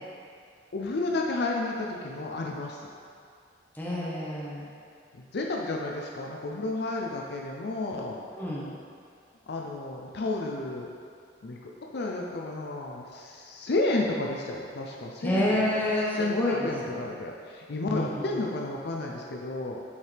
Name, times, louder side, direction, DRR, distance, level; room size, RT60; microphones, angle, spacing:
voice 1, 0.7-2.9 5.3-8.2 9.5-10.9 11.4-15.5 16.1-19.8, left 2 dB, 60° left, -1 dB, 0.5 m, -31 dB
voice 2, 3.7-4.7 8.3-8.7 15.2-17.0 17.9-18.4, left 1 dB, 10° left, -6 dB, 1.1 m, -29 dB
7.2 x 4.7 x 3.4 m, 2.3 s
head